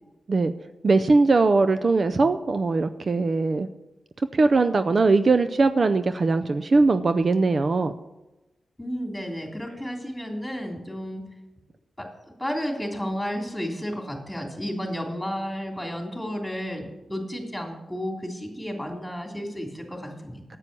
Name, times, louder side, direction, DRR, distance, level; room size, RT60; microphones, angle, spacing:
voice 1, 0.8-3.7 4.3-7.9, right 3 dB, 50° right, 10 dB, 0.5 m, -20 dB
voice 2, 8.8-11.2 12.0-12.1 12.4-20.6, equal, 5° left, 1 dB, 3.2 m, -32 dB
9.8 x 8.5 x 6.9 m, 1.0 s
cardioid pair, 80°, 0 cm